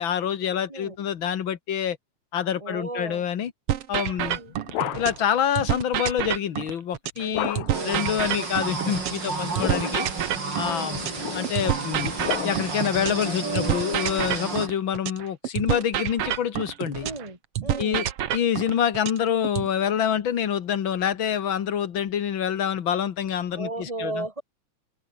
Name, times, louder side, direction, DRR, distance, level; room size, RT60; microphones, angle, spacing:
voice 1, 0.0-2.0 2.3-3.5 3.9-4.4 5.0-10.1 10.6-11.0 11.3-12.1 12.4-17.1 17.8-18.1 18.3-24.2, left 9 dB, 50° left, 1.8 m, -26 dB
voice 2, 2.6-3.3 4.0-4.5 7.2-8.3 9.7-10.0 10.6-11.1 17.0-18.1 23.5-24.4, right 2 dB, 10° right, 5.3 m, -36 dB
sound 1, 3.7-5.3 5.5-9.3 9.5-13.3 13.5-17.3 17.5-19.7, right 11 dB, 60° right, 1.9 m, -28 dB
sound 2, 4.2-5.4 7.3-8.0 9.3-10.1 10.9-12.9, left 14 dB, 75° left, 2.4 m, -33 dB
sound 3, 7.7-14.7, right 3 dB, 35° right, 4.9 m, -31 dB
omnidirectional pair, 3.3 m